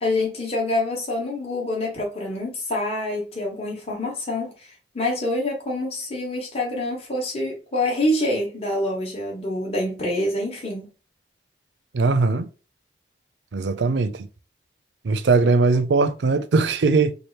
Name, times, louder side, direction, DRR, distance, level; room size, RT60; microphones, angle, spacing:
voice 1, 0.0-10.9, left 1 dB, 35° left, 0.9 m, -26 dB
voice 2, 11.9-12.5 13.5-14.3 15.0-17.2, right 3 dB, 85° right, 0.5 m, -20 dB
3.3 x 2.4 x 4.4 m
head